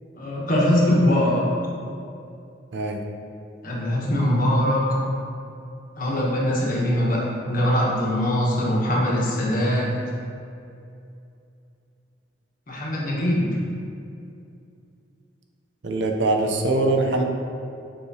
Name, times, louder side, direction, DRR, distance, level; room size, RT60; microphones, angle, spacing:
voice 1, 0.2-1.5 3.6-5.0 6.0-9.9 12.7-13.5, left 1 dB, 50° left, -5 dB, 1.3 m, -22 dB
voice 2, 15.8-17.2, right 2 dB, 70° right, 2 dB, 0.6 m, -22 dB
7.3 x 4.7 x 2.8 m, 2.6 s
head